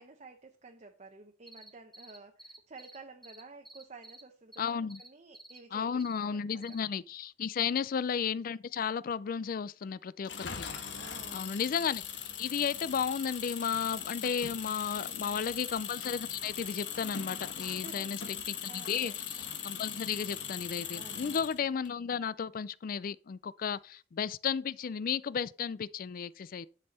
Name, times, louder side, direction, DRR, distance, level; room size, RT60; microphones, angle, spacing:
voice 1, 0.0-6.8 7.6-7.8 11.0-11.5 14.9-15.5 17.7-19.3 20.9-21.4, right 3 dB, 40° right, 0.8 m, -52 dB
sound 1, 1.5-3.0 3.2-4.2 4.5-5.1 5.3-5.6 6.0-6.2 6.6-6.8, right 1 dB, ahead, 1.7 m, -51 dB
voice 2, 4.6-5.0 5.7-10.7 11.3-12.0 12.4-26.7, left 7 dB, 50° left, 0.4 m, -34 dB
Engine, 10.2-21.9, left 8 dB, 90° left, 1.2 m, -40 dB
11.0 x 5.5 x 4.1 m
head